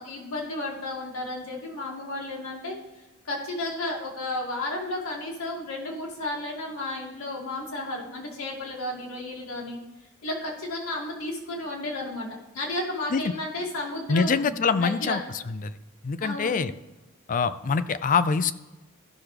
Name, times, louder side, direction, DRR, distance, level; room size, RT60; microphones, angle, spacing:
voice 1, 0.0-2.7 3.2-9.8 10.2-15.2 16.2-16.6, left 2 dB, 85° left, -1 dB, 2.3 m, -33 dB
voice 2, 14.1-15.2 16.0-16.7 17.3-18.5, left 5 dB, 40° left, 13 dB, 0.4 m, -24 dB
14.0 x 5.9 x 3.3 m, 1.1 s
head